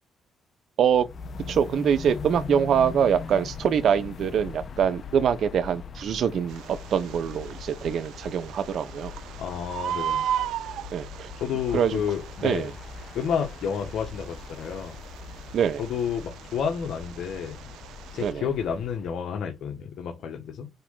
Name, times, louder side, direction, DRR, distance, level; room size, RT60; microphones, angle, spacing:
sound 1, 0.9-19.2, left 5 dB, 50° left, 1.2 m, -41 dB
voice 1, 1.5-9.1 10.9-11.3 11.7-12.0 12.4-12.7 15.5-15.8 18.2-18.5, right 8 dB, 65° right, 1.2 m, -24 dB
Bird, 6.5-18.3, right 10 dB, 85° right, 0.6 m, -37 dB
voice 2, 9.4-10.3 11.4-12.7 13.1-15.0 15.8-17.6 18.1-20.7, left 7 dB, 70° left, 1.8 m, -30 dB
9.2 x 3.9 x 4.0 m
cardioid pair, 90°, 0 cm